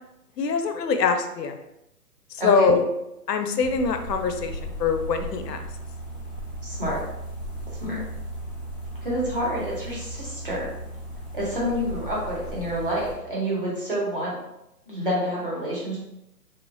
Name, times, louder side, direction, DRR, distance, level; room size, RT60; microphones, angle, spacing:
voice 1, 0.4-1.5 2.4-2.9 3.3-5.7, left 5 dB, 80° left, 6 dB, 0.6 m, -23 dB
sound 1, 3.6-13.2, right 1 dB, 30° left, 0.6 m, -36 dB
voice 2, 6.6-7.0 7.8-8.0 9.0-10.7 11.3-14.3 14.9-16.0, equal, 35° right, -6 dB, 0.7 m, -28 dB
2.9 x 2.1 x 2.5 m, 0.87 s
hypercardioid pair, 175°, 49 cm